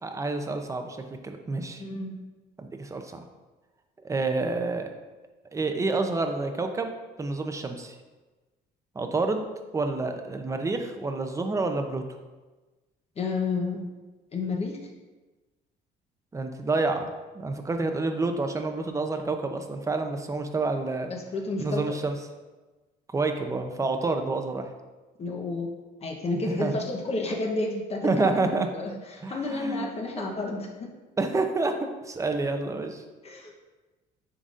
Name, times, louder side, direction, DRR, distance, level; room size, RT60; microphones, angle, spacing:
voice 1, 0.0-1.8 2.6-3.2 4.0-4.9 5.5-6.9 7.2-7.9 8.9-9.5 9.7-12.2 16.3-21.1 21.6-22.2 23.1-24.7 26.5-26.8 28.0-28.7 29.2-29.9 31.2-31.8 32.0-33.0, right 3 dB, 20° right, 6 dB, 0.6 m, -28 dB
voice 2, 1.8-2.2 13.2-13.8 14.3-14.8 21.1-21.8 25.2-25.7 26.0-30.9 33.2-33.5, left 3 dB, 40° left, 0 dB, 0.9 m, -31 dB
9.9 x 3.9 x 2.5 m, 1.2 s
cardioid pair, 110°, 17 cm